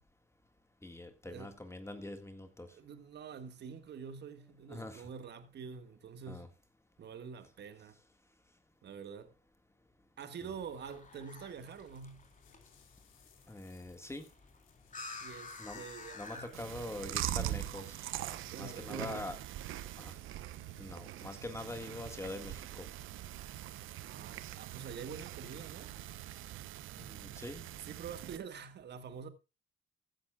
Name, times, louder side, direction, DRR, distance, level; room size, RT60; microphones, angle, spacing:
voice 1, 0.8-2.7 4.7-5.1 6.3-6.5 10.4-10.5 13.5-14.3 15.6-15.8 16.1-18.1 18.6-19.4 20.0-20.2 20.8-22.9 27.0-27.7, left 1 dB, 15° left, 1.7 m, -44 dB
voice 2, 2.7-6.5 7.0-8.0 8.8-9.3 10.2-12.3 15.2-16.5 18.5-19.3 24.0-26.0 27.8-29.3, right 6 dB, 60° right, 1.6 m, -46 dB
sound 1, 10.4-16.8, left 3 dB, 40° left, 3.7 m, -51 dB
sound 2, 11.3-18.5, left 9 dB, 90° left, 2.5 m, -67 dB
Chewing mastication, 16.5-28.4, right 13 dB, 90° right, 1.0 m, -42 dB
15.0 x 11.5 x 2.3 m
cardioid pair, 90°, 20 cm